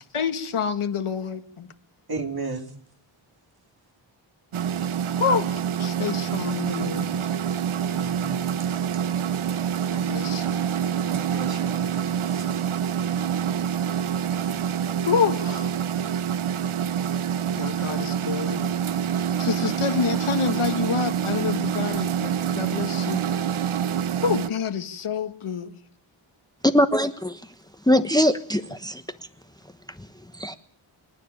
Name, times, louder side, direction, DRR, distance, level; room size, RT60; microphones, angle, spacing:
voice 1, 0.1-1.7 5.2-7.2 9.9-10.6 15.0-15.7 17.6-18.7 19.4-23.5 24.2-25.8, left 6 dB, 80° left, 1.8 m, -28 dB
voice 2, 2.1-2.7 5.0-5.2 7.9-8.5 11.0-12.7, right 3 dB, 45° right, 3.4 m, -35 dB
sound 1, 4.5-24.5, right 8 dB, 75° right, 0.9 m, -26 dB
voice 3, 26.6-27.4 27.9-29.0 30.0-30.1 30.4-30.6, left 1 dB, 10° left, 1.1 m, -21 dB
28.0 x 9.8 x 9.9 m
cardioid pair, 60°, 49 cm